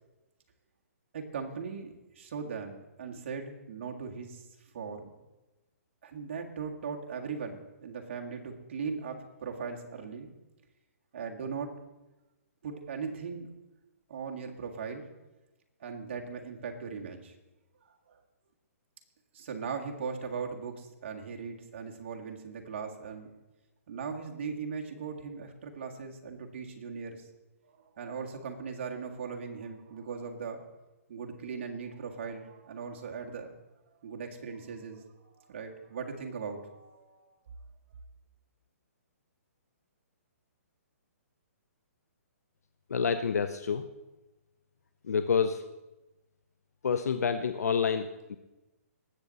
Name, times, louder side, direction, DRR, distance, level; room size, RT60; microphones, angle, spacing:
voice 1, 1.1-4.4 4.7-5.1 6.0-10.3 11.1-11.7 12.6-13.5 14.1-15.1 15.8-17.3 17.8-18.2 19.3-23.3 23.9-27.3 27.8-30.7 31.1-33.5 34.0-37.4, right 5 dB, 45° right, 2 dB, 1.7 m, -39 dB
voice 2, 42.9-43.9 45.0-45.6 46.8-48.4, left 6 dB, 85° left, 9 dB, 0.7 m, -28 dB
19.0 x 7.5 x 4.1 m, 1.0 s
hypercardioid pair, 165°, 8 cm